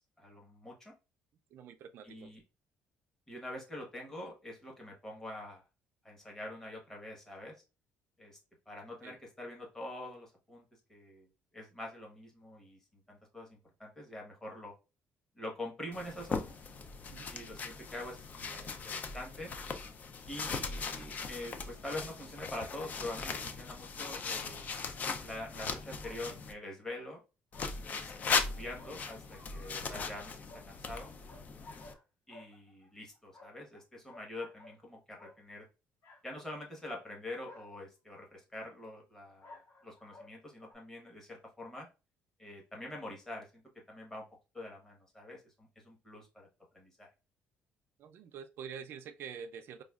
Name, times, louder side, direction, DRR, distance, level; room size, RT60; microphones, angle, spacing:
voice 1, 0.2-0.9 2.0-2.4 3.3-5.6 6.0-7.5 8.2-8.4 8.7-10.6 10.9-11.3 11.5-14.7 15.3-16.6 17.3-19.5 20.3-24.7 25.2-27.2 27.8-31.1 32.3-35.6 36.2-41.9 42.4-43.6 43.9-44.2 44.5-46.5 46.7-47.1, left 1 dB, 10° left, 1.2 m, -45 dB
voice 2, 1.5-2.3 9.0-9.2 17.1-17.3 48.0-49.8, right 7 dB, 60° right, 0.4 m, -46 dB
sound 1, 15.9-26.5 27.5-31.9, left 5 dB, 40° left, 0.4 m, -39 dB
sound 2, 26.0-26.2 27.5-29.0 29.3-29.9 30.5-30.7 31.0-32.0 32.3-33.8 34.1-34.8 35.2-35.4 36.0-36.2 36.8-36.9 37.5-37.8 39.4-40.4 40.7-40.8, left 2 dB, 70° left, 1.0 m, -55 dB
5.0 x 2.3 x 2.3 m
cardioid pair, 135°, 4 cm